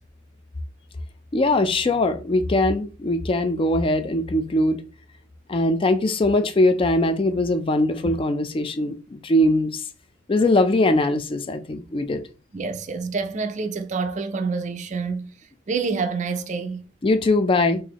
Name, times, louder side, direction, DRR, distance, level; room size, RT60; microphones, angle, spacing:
voice 1, 1.3-4.8 5.5-9.8 10.3-12.2 17.0-17.8, left 2 dB, 25° left, 0.4 m, -21 dB
voice 2, 12.5-15.3 15.7-16.8, right 4 dB, 40° right, 0.4 m, -27 dB
3.9 x 2.6 x 2.9 m
head